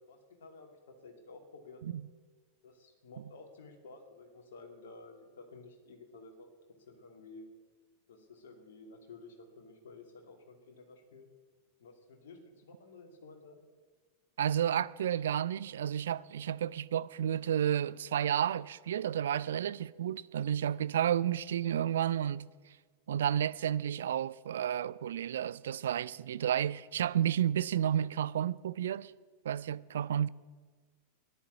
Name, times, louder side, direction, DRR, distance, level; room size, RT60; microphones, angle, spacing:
voice 1, 0.0-1.8 2.6-6.5 6.9-7.5 8.1-11.3 11.8-13.6, left 3 dB, 60° left, 2.5 m, -53 dB
voice 2, 14.4-22.5 23.1-29.1 29.4-30.3, right 10 dB, 60° right, 0.4 m, -31 dB
13.0 x 10.5 x 8.5 m
figure-of-eight pair, 90°, 0 cm